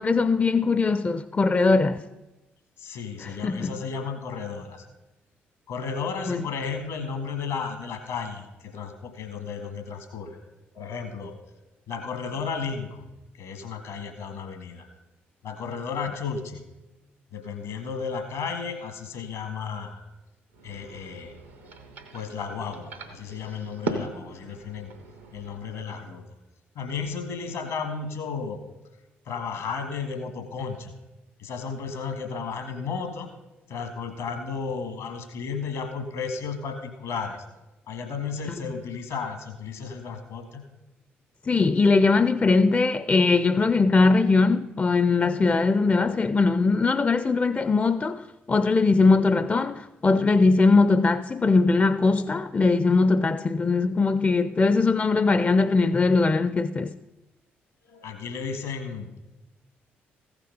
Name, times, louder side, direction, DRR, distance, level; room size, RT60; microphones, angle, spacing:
voice 1, 0.0-2.0 3.2-3.7 6.3-6.4 41.5-56.9, left 3 dB, 25° left, 0.4 m, -21 dB
voice 2, 2.8-4.9 5.7-10.4 10.7-11.4 11.9-13.0 13.3-14.9 15.4-16.6 17.3-20.0 20.6-21.3 21.6-21.7 22.1-24.9 25.3-26.3 26.7-28.6 29.2-30.9 31.4-33.3 33.7-37.4 37.9-40.6 57.9-59.1, left 5 dB, 70° left, 1.7 m, -33 dB
sound 1, 20.5-25.6, right 2 dB, 90° right, 0.9 m, -38 dB
15.0 x 5.9 x 5.3 m
figure-of-eight pair, 45°, 6 cm